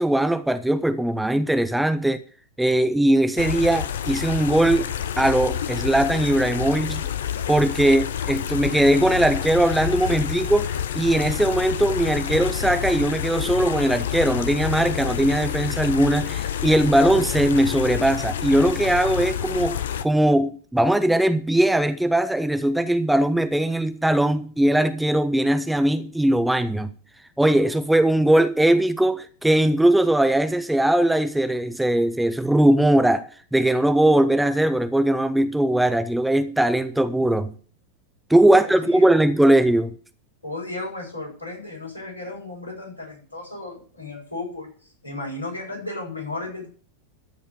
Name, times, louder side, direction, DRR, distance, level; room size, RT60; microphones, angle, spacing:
voice 1, 0.0-2.2 2.6-4.9 5.2-7.1 7.5-26.9 27.4-37.5 38.3-39.9, right 1 dB, 5° right, 0.7 m, -20 dB
sound 1, 3.4-20.1, left 9 dB, 60° left, 0.7 m, -28 dB
voice 2, 38.5-39.3 40.4-44.7 45.0-46.7, left 2 dB, 80° left, 7.8 m, -34 dB
14.0 x 5.2 x 8.3 m
figure-of-eight pair, 90°, 0 cm